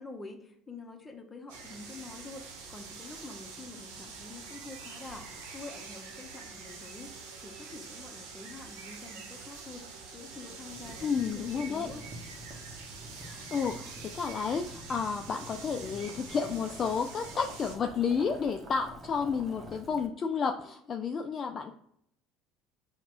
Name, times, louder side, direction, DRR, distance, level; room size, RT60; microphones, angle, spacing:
voice 1, 0.0-12.0, left 3 dB, 20° left, 4 dB, 0.8 m, -47 dB
sound 1, 1.5-17.8, right 4 dB, 75° right, 0.8 m, -46 dB
Boiling, 10.7-20.1, right 1 dB, 30° right, 0.9 m, -48 dB
voice 2, 11.0-11.9 13.3-21.7, left 6 dB, 40° left, 4 dB, 0.3 m, -31 dB
5.7 x 2.2 x 2.4 m, 0.69 s
hypercardioid pair, 70°, 0 cm